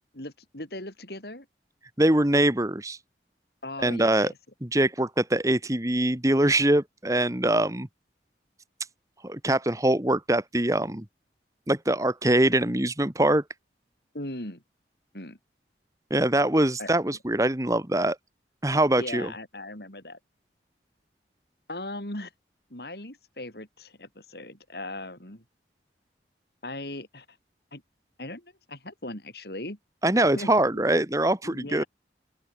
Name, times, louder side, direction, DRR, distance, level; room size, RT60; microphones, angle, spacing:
voice 1, 0.1-1.5 3.6-4.3 14.1-14.6 15.1-15.4 16.8-17.2 19.0-20.2 21.7-22.3 22.7-25.4 26.6-27.3 27.7-27.8 28.2-29.8 30.4-30.9 31.4-31.9, left 1 dB, 60° left, 5.4 m, -38 dB
voice 2, 2.0-3.0 3.8-4.3 4.6-7.9 9.2-11.0 11.7-13.4 16.1-18.2 18.6-19.3 30.0-31.8, right 1 dB, 20° right, 1.6 m, -23 dB
open air
head